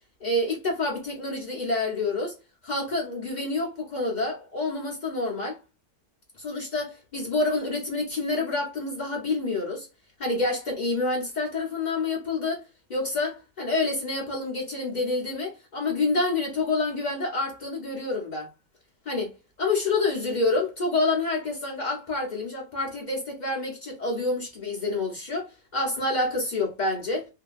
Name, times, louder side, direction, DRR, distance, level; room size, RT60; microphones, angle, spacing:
voice 1, 0.2-2.4 2.6-5.6 6.4-9.9 10.2-12.6 12.9-18.5 19.1-19.3 19.6-27.3, left 2 dB, 80° left, 0.4 m, -28 dB
2.7 x 2.6 x 2.3 m
omnidirectional pair, 1.9 m